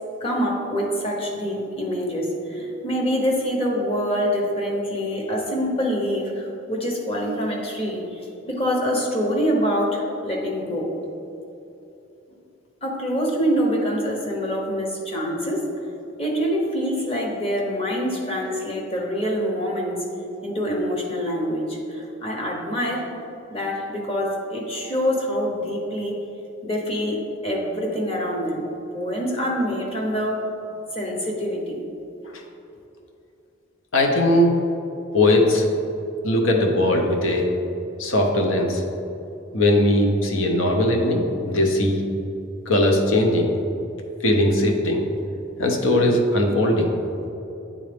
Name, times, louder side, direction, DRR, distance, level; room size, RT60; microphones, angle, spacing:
voice 1, 0.2-10.9 12.8-15.6 16.2-20.0 20.4-23.1 23.5-26.1 26.6-28.6 28.9-30.4 30.9-31.8, equal, 30° left, -2 dB, 1.0 m, -25 dB
voice 2, 33.9-34.6 35.1-35.7 36.2-37.5 38.0-38.8 39.5-42.0 42.7-43.5 44.2-45.0 45.6-46.9, left 1 dB, 80° left, 2 dB, 0.8 m, -19 dB
8.8 x 3.7 x 3.4 m, 2.8 s
head